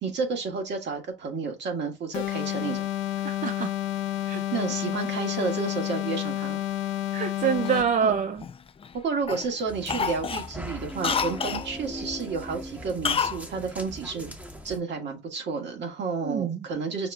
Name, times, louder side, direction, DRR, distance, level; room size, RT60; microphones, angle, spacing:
voice 1, 0.0-2.9 4.5-6.6 8.0-8.1 9.0-14.3 14.6-17.1, right 5 dB, 65° right, 1.5 m, -31 dB
sound 1, 2.1-8.0, left 13 dB, 80° left, 0.6 m, -30 dB
voice 2, 3.2-3.7 4.3-4.4 7.1-8.4 16.2-16.6, right 7 dB, 40° right, 0.4 m, -26 dB
Cough, 7.7-8.9 9.3-9.5 9.9-11.7 13.0-13.4 13.7-13.8, left 6 dB, 30° left, 0.3 m, -29 dB
sound 2, 9.7-14.8, equal, 10° right, 0.9 m, -39 dB
5.9 x 2.2 x 3.4 m
cardioid pair, 90°, 20 cm